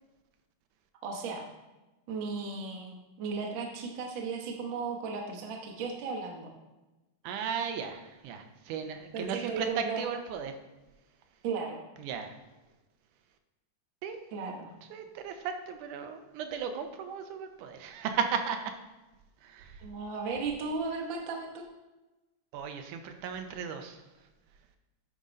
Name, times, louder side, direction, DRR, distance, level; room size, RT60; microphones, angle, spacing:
voice 1, 1.0-1.5 2.1-6.5 9.1-10.0 11.4-11.8 14.3-14.7 19.8-21.7, right 4 dB, 60° right, 1 dB, 1.3 m, -35 dB
voice 2, 7.2-10.6 12.0-12.3 14.0-14.2 14.9-18.7 19.4-19.9 22.5-24.0, right 7 dB, 85° right, 6 dB, 2.2 m, -35 dB
9.4 x 3.7 x 5.2 m, 1.1 s
omnidirectional pair, 3.5 m